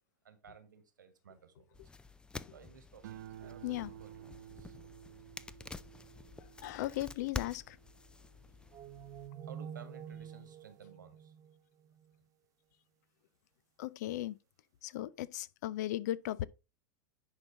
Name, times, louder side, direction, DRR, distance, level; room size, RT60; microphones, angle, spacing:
voice 1, 0.2-1.9 2.5-4.8 9.4-11.4, right 7 dB, 90° right, 1.6 m, -56 dB
sound 1, 1.7-9.3, left 4 dB, 10° left, 0.4 m, -48 dB
sound 2, 3.0-9.6 10.0-10.5, right 11 dB, 75° right, 0.6 m, -53 dB
voice 2, 6.6-7.8 13.8-14.4 14.8-16.5, left 14 dB, 65° left, 0.5 m, -37 dB
sound 3, 8.7-12.2, right 8 dB, 35° right, 1.1 m, -48 dB
10.5 x 4.0 x 3.7 m
hypercardioid pair, 105°, 10 cm